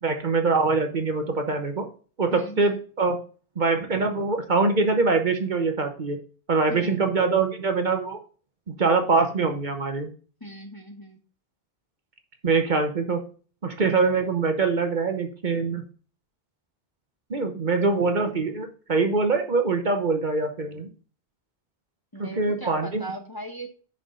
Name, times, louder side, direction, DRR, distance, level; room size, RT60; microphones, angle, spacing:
voice 1, 0.0-1.9 2.2-3.2 3.6-6.2 6.5-8.2 8.7-10.1 12.4-13.2 13.6-15.8 17.3-20.9 22.2-23.0, right 4 dB, 50° right, 6 dB, 1.1 m, -24 dB
voice 2, 2.3-2.8 6.6-7.1 10.4-11.2 22.1-23.8, equal, 20° left, 3 dB, 0.9 m, -38 dB
6.2 x 4.9 x 5.2 m, 0.39 s
omnidirectional pair, 1.1 m